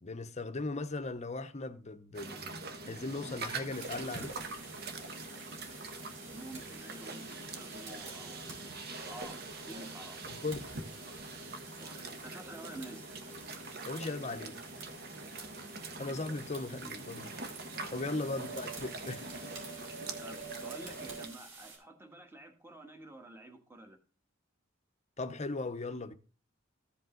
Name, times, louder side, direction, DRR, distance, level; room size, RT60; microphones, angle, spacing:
voice 1, 0.0-4.4 10.3-10.6 13.9-14.6 16.0-17.4 17.9-19.3 25.2-26.1, left 2 dB, 35° left, 0.7 m, -38 dB
sound 1, 2.1-21.3, right 3 dB, 50° right, 1.2 m, -44 dB
sound 2, 3.7-21.8, right 3 dB, 80° right, 4.8 m, -50 dB
voice 2, 6.3-8.8 9.1-10.2 11.8-13.0 17.9-18.2 20.2-24.0, right 1 dB, 10° right, 1.6 m, -49 dB
14.5 x 5.3 x 3.8 m
head